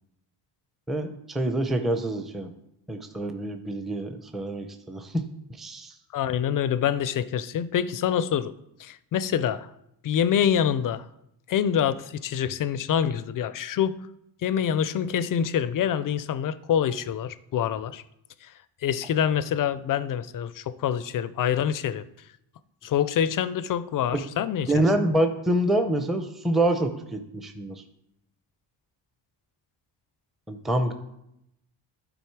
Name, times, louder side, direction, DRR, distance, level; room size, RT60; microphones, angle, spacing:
voice 1, 0.9-2.5 2.9-5.3 5.6-5.9 24.1-24.2 24.7-27.8 30.5-30.9, right 1 dB, ahead, 6 dB, 0.6 m, -26 dB
voice 2, 6.1-8.5 8.8-9.7 10.0-11.1 11.5-14.0 14.4-18.0 18.4-18.5 18.8-22.1 22.8-24.8, left 9 dB, 45° left, 16 dB, 0.4 m, -26 dB
11.5 x 4.1 x 4.6 m, 0.83 s
cardioid pair, 105°, 48 cm